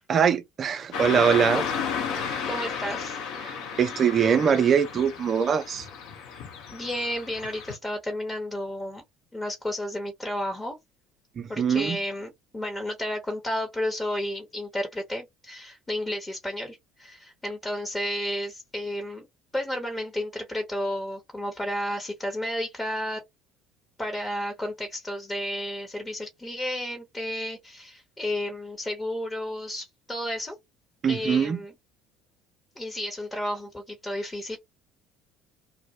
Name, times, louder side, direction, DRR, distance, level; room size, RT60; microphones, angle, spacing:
voice 1, 0.1-1.6 3.4-5.9 11.4-12.0 31.0-31.6, right 7 dB, 40° right, 0.4 m, -23 dB
Car passing by / Traffic noise roadway noise, 0.9-7.8, left 6 dB, 60° left, 0.8 m, -33 dB
voice 2, 2.5-3.2 6.7-9.0 9.3-10.8 11.5-19.3 19.5-23.2 24.0-30.5 31.1-31.7 32.8-34.6, left 1 dB, 20° left, 0.8 m, -32 dB
2.2 x 2.1 x 2.7 m
figure-of-eight pair, 60°, 0 cm